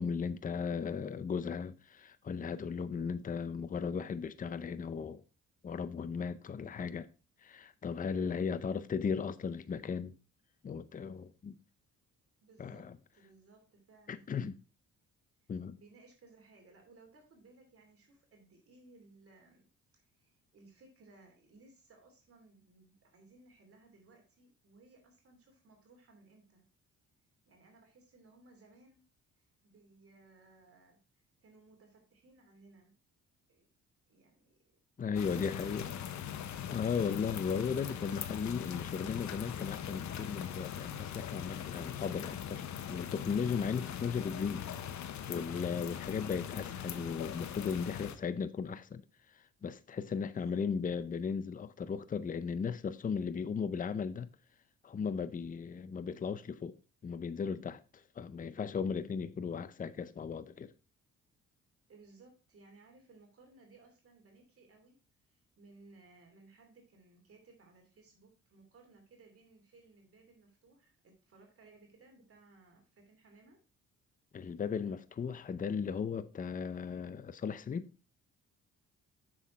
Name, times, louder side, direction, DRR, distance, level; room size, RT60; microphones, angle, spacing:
voice 1, 0.0-5.2 5.6-7.1 7.4-10.1 10.6-11.6 12.6-13.0 14.1-14.6 15.5-15.8 35.0-35.9 36.7-44.9 45.3-49.0 49.3-54.3 54.8-56.8 57.0-60.7 74.3-77.9, left 6 dB, 25° left, 0.6 m, -36 dB
voice 2, 12.4-14.3 15.4-19.7 19.9-26.6 27.5-29.0 29.4-33.0 33.5-33.7 34.1-34.6 35.2-36.7 50.1-50.6 61.9-65.0 65.2-73.6, right 3 dB, 50° right, 2.8 m, -61 dB
sound 1, 35.1-48.2, left 9 dB, 70° left, 1.0 m, -41 dB
7.2 x 6.3 x 4.2 m
cardioid pair, 90°, 30 cm